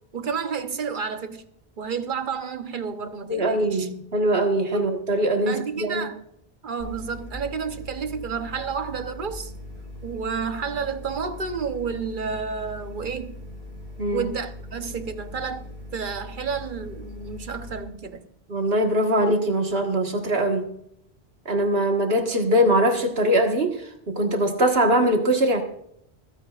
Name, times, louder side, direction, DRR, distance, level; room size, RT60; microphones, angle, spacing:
voice 1, 0.1-1.5 1.8-3.9 4.7-4.8 5.5-6.2 6.6-9.5 10.0-13.4 14.1-15.7 15.9-18.3, right 6 dB, 55° right, 1.1 m, -30 dB
voice 2, 3.3-6.1 14.0-14.3 18.5-20.7 21.5-25.6, right 1 dB, 70° right, 1.8 m, -22 dB
sound 1, 6.8-17.8, left 1 dB, 40° left, 4.5 m, -40 dB
26.0 x 8.9 x 2.4 m
omnidirectional pair, 1.0 m